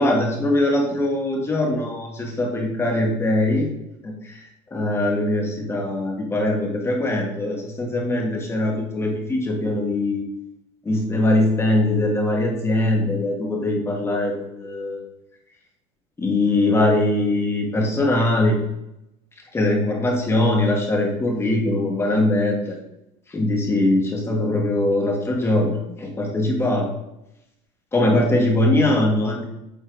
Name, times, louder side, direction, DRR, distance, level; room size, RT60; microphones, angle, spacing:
voice 1, 0.0-3.7 4.0-4.4 4.7-10.3 10.8-15.0 16.2-18.6 19.5-22.8 23.3-26.9 27.9-29.4, left 1 dB, 20° left, 0 dB, 1.9 m, -21 dB
8.2 x 4.3 x 4.0 m, 0.85 s
supercardioid pair, 120°, 14 cm